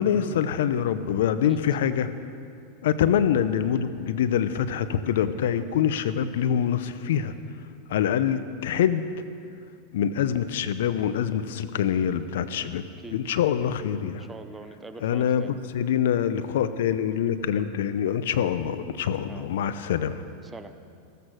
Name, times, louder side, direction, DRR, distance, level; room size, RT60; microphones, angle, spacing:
voice 1, 0.0-2.1 2.8-7.3 7.9-9.0 9.9-12.8 13.1-14.3 15.0-20.2, left 9 dB, 75° left, 12 dB, 0.7 m, -25 dB
voice 2, 14.2-15.6 19.3-19.5 20.4-20.7, right 3 dB, 15° right, 9 dB, 1.0 m, -43 dB
15.0 x 13.5 x 6.4 m, 2.4 s
hypercardioid pair, 105°, 0 cm